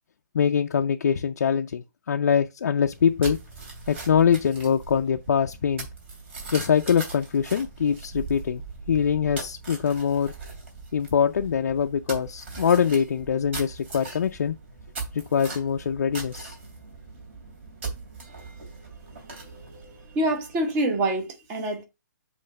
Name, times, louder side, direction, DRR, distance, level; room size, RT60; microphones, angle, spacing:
voice 1, 0.3-3.4 3.9-5.9 6.5-8.6 8.9-10.3 10.9-14.5 15.1-16.5, left 7 dB, 60° left, 0.5 m, -23 dB
sound 1, 2.8-20.8, right 4 dB, 40° right, 2.9 m, -40 dB
voice 2, 20.1-21.8, right 1 dB, 15° right, 1.0 m, -25 dB
7.7 x 3.2 x 5.3 m
hypercardioid pair, 170°, 10 cm